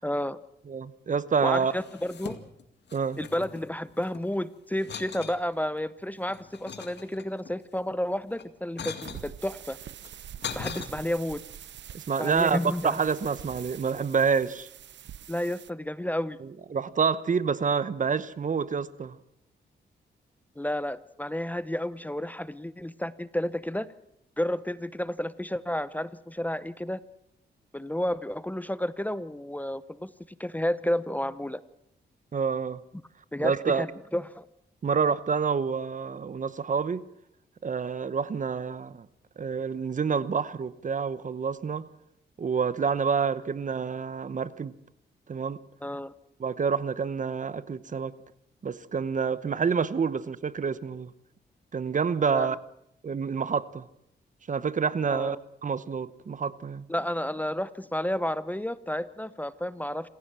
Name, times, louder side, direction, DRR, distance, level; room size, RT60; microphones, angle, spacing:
voice 1, 0.0-0.4 1.4-2.4 3.2-9.8 10.5-11.4 12.2-13.0 15.3-16.4 20.6-23.9 24.4-27.0 27.7-30.1 30.4-31.6 33.3-34.5 45.8-46.1 52.3-52.5 55.1-55.4 56.9-60.1, left 1 dB, 10° left, 16 dB, 0.8 m, -31 dB
voice 2, 0.7-1.7 2.9-3.2 11.9-14.7 16.7-19.2 32.3-32.8 33.4-33.8 34.8-37.0 37.6-39.1 39.4-41.9 42.4-44.7 45.3-45.6 46.4-48.1 48.6-51.1 51.7-52.6 53.0-53.9 54.5-55.4 55.6-56.8, right 6 dB, 45° right, 16 dB, 1.0 m, -28 dB
sound 1, 1.6-2.6 2.9-4.3 4.8-5.4 6.0-7.5 8.3-9.3 10.0-10.9, left 7 dB, 70° left, 2.2 m, -40 dB
sound 2, 9.0-15.7, right 10 dB, 75° right, 0.7 m, -45 dB
27.0 x 16.0 x 7.5 m, 0.79 s
cardioid pair, 95°, 18 cm